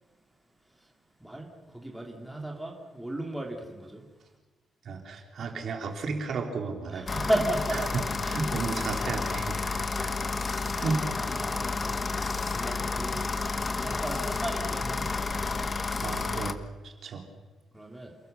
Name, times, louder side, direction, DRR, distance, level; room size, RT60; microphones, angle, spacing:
voice 1, 1.2-4.1 6.9-7.8 8.3-8.4 10.7-10.9 11.2-15.7 17.7-18.2, right 1 dB, 5° right, 0 dB, 3.1 m, -35 dB
voice 2, 4.8-7.3 7.7-10.2 10.7-11.0 15.9-17.2, right 4 dB, 50° right, 3 dB, 3.4 m, -34 dB
sound 1, 7.1-16.5, left 3 dB, 25° left, 1.2 m, -31 dB
28.5 x 19.5 x 6.9 m, 1.3 s
cardioid pair, 140°, 0 cm